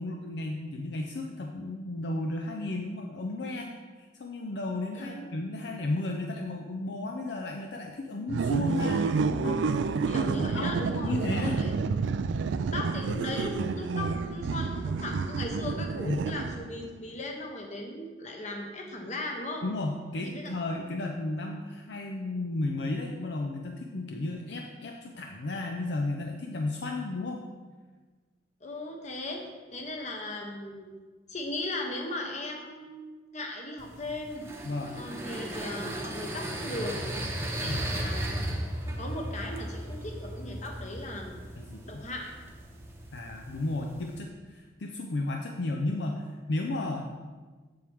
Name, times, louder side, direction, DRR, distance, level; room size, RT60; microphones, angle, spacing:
voice 1, 0.0-3.7 4.0-9.6 10.3-11.7 16.0-16.3 19.6-27.4 34.6-34.9 37.6-37.9 41.6-42.0 43.1-47.1, left 2 dB, 65° left, 2 dB, 0.5 m, -33 dB
sound 1, 8.3-16.8, right 4 dB, 75° right, 0.3 m, -29 dB
voice 2, 10.1-11.7 12.7-19.7 20.2-20.5 28.6-29.4 29.7-30.9 31.3-34.5 34.9-37.0 37.6-37.7 38.0-38.3 39.0-41.4 41.8-42.3, left 1 dB, 40° left, 2 dB, 1.1 m, -37 dB
sound 2, 33.8-44.2, right 1 dB, 15° right, 0.9 m, -36 dB
7.7 x 7.0 x 3.5 m, 1.4 s
head